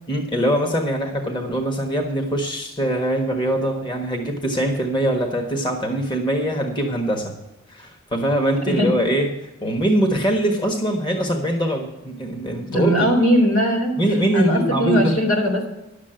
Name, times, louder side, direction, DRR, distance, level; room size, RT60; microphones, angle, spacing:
voice 1, 0.1-7.4 7.7-9.3 9.6-13.1 14.0-15.1, right 1 dB, 20° left, 3 dB, 1.3 m, -22 dB
voice 2, 12.7-14.0 14.3-15.7, equal, 85° left, 2 dB, 3.5 m, -19 dB
11.0 x 7.4 x 7.6 m, 0.94 s
head